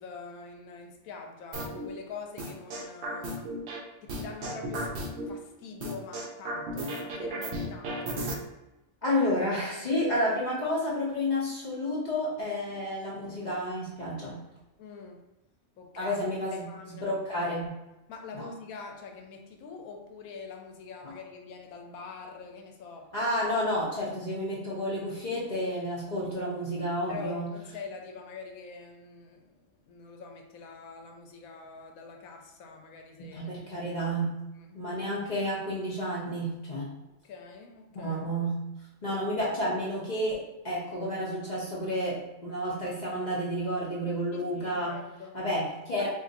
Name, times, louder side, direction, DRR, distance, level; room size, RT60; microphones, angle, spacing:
voice 1, 0.0-3.5 4.0-8.2 12.7-12.8 14.8-15.2 15.8-16.1 16.5-17.1 18.1-23.1 27.1-33.5 34.5-34.8 37.2-38.2 44.3-45.4 46.0-46.1, left 5 dB, 85° left, 3 dB, 1.0 m, -45 dB
sound 1, 1.5-1.9 2.4-3.8 4.1-5.3 5.8-8.4, right 1 dB, 65° right, 0.7 m, -34 dB
voice 2, 9.0-14.4 16.0-17.7 18.3-18.5 23.1-27.5 33.2-34.4 34.7-36.9 37.9-38.7 39.0-45.0 45.3-46.1, equal, 40° left, -6 dB, 0.6 m, -31 dB
2.6 x 2.5 x 3.9 m, 0.98 s
omnidirectional pair, 1.5 m